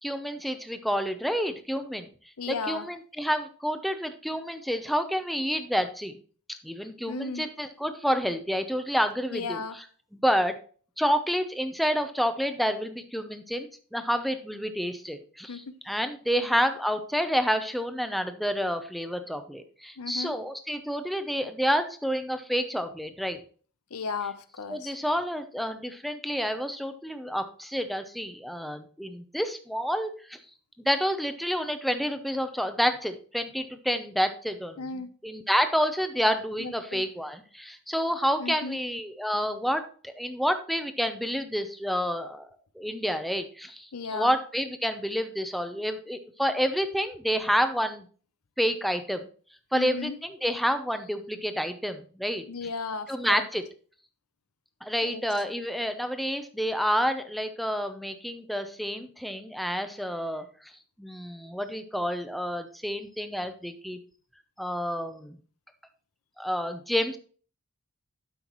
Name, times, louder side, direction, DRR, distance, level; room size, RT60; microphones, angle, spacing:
voice 1, 0.0-2.1 2.5-6.2 6.5-9.6 10.1-10.5 11.0-23.4 24.7-30.4 30.8-34.8 35.2-42.5 42.8-48.1 48.6-49.3 49.7-52.4 53.1-53.6 54.8-60.7 61.0-64.0 64.6-65.4 66.4-67.2, equal, ahead, 0.7 m, -29 dB
voice 2, 2.4-2.9 7.1-7.5 9.3-9.8 15.5-15.7 16.3-16.5 20.0-20.4 23.9-24.9 34.8-35.1 36.6-37.0 38.4-38.8 43.9-44.4 49.7-50.2 52.5-53.5 55.0-55.2, left 4 dB, 75° left, 0.7 m, -35 dB
12.0 x 5.7 x 3.0 m
head